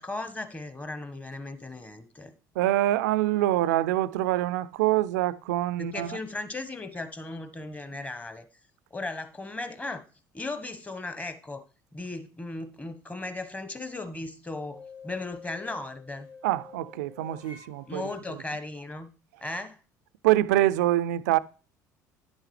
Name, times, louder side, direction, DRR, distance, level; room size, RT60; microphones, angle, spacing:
voice 1, 0.0-2.3 5.8-8.5 8.9-10.0 10.3-11.6 11.9-16.3 17.9-19.1 19.4-19.8, left 2 dB, 15° left, 1.2 m, -36 dB
voice 2, 2.5-6.2 16.4-18.4 20.2-21.4, right 15 dB, 75° right, 0.4 m, -25 dB
sound 1, 14.6-18.2, left 4 dB, 75° left, 2.9 m, -48 dB
10.5 x 8.0 x 3.2 m
figure-of-eight pair, 60°, 9 cm